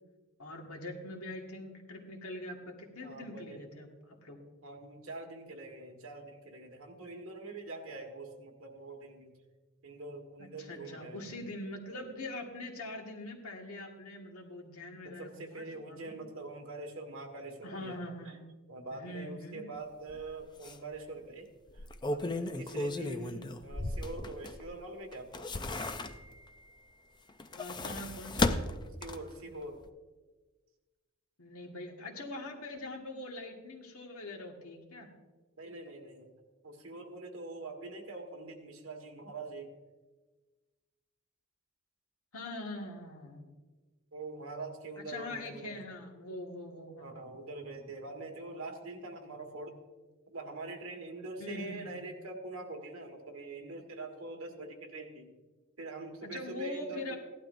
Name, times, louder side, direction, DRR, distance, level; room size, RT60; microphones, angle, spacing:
voice 1, 0.4-4.4 10.4-16.1 17.6-18.4 19.0-19.6 23.0-23.4 27.5-28.6 31.4-35.1 42.3-43.5 45.1-47.1 51.4-51.9 56.2-57.2, left 1 dB, 85° left, 1 dB, 1.7 m, -43 dB
voice 2, 3.0-3.6 4.6-9.3 9.8-11.2 15.0-18.4 18.7-21.5 21.7-25.5 29.0-29.8 35.6-36.3 36.6-39.7 44.1-45.8 47.0-49.8 50.3-55.3 55.8-57.2, right 2 dB, 70° right, 2 dB, 1.6 m, -44 dB
sound 1, 20.1-20.2 20.6-20.7 21.7-24.7 25.1-26.5 27.3-29.4 29.8-29.9, left 2 dB, 20° left, 0.4 m, -35 dB
16.5 x 11.5 x 2.6 m, 1.3 s
head